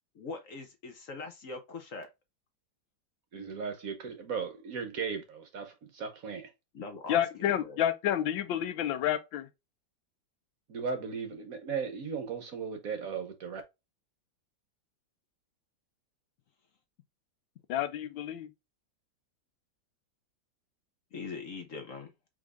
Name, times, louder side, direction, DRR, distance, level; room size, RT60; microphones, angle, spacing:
voice 1, 0.1-2.1 6.7-7.8 21.1-22.1, left 4 dB, 55° left, 1.0 m, -42 dB
voice 2, 3.3-6.5 10.7-13.6, right 5 dB, 60° right, 1.0 m, -36 dB
voice 3, 7.1-9.5 17.7-18.5, left 11 dB, 85° left, 1.4 m, -29 dB
5.0 x 3.6 x 2.4 m
omnidirectional pair, 2.0 m